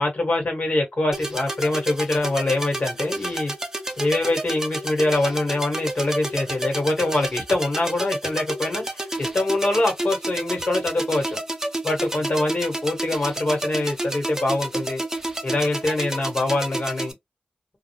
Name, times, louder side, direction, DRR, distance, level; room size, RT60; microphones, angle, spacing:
voice 1, 0.0-3.5 4.0-11.4 11.8-15.0 15.4-17.1, left 2 dB, 50° left, 1.3 m, -24 dB
sound 1, 1.1-17.1, right 1 dB, 15° right, 0.6 m, -30 dB
2.3 x 2.0 x 2.8 m
wide cardioid pair, 60°, 3 cm